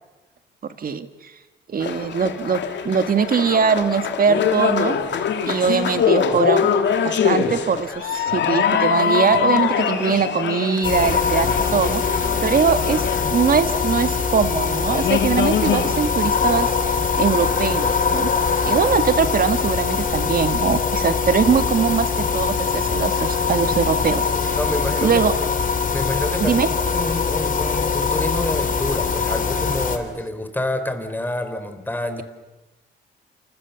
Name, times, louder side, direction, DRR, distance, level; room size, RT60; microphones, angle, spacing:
voice 1, 0.8-1.3 1.7-5.0 5.5-6.7 7.0-18.3 18.7-24.6 25.0-25.3 26.4-26.7, right 6 dB, 45° right, 10 dB, 1.9 m, -22 dB
sound 1, 1.8-13.8 14.5-14.6 14.9-16.1, left 7 dB, 65° left, 2.8 m, -23 dB
sound 2, 10.8-30.0, left 5 dB, 45° left, 3.3 m, -22 dB
voice 2, 24.5-25.5 25.9-26.6 26.9-32.2, left 1 dB, 10° left, 8 dB, 3.9 m, -28 dB
28.5 x 28.5 x 7.2 m, 1.1 s
cardioid pair, 90°, 20 cm